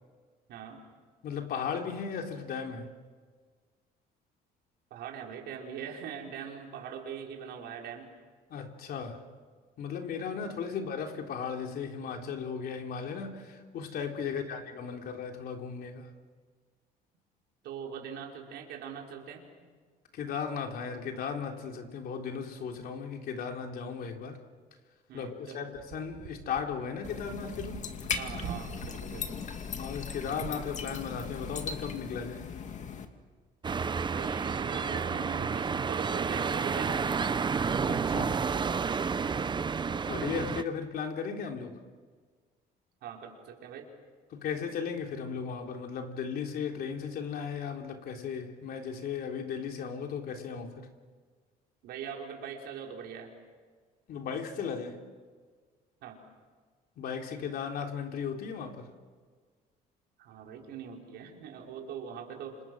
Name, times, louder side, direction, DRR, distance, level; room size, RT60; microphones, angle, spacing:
voice 1, 0.5-0.8 4.9-8.1 14.2-14.5 17.6-19.5 25.1-25.7 28.2-29.4 34.1-37.1 39.2-39.5 43.0-43.9 51.8-53.3 56.0-56.2 60.2-62.6, right 7 dB, 80° right, 5.1 m, -42 dB
voice 2, 1.2-2.9 8.5-9.2 9.8-16.1 20.1-24.4 25.1-27.9 29.8-32.5 37.9-38.4 39.9-41.8 44.3-50.9 54.1-55.0 57.0-58.9, left 6 dB, 65° left, 3.6 m, -36 dB
sound 1, 25.7-28.9 30.3-30.6, right 10 dB, 60° right, 1.8 m, -44 dB
sound 2, 27.0-33.1, left 6 dB, 45° left, 2.4 m, -38 dB
sound 3, 33.6-40.6, right 5 dB, 25° right, 0.9 m, -30 dB
29.5 x 27.0 x 6.4 m
cardioid pair, 110°, 17 cm